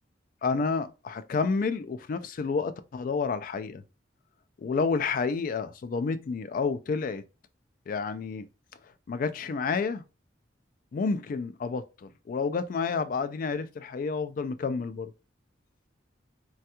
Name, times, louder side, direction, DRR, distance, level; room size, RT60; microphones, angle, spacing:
voice 1, 0.4-3.8 4.6-7.2 7.9-8.5 9.1-10.0 10.9-15.1, left 4 dB, 45° left, 0.3 m, -30 dB
3.3 x 2.3 x 2.8 m
head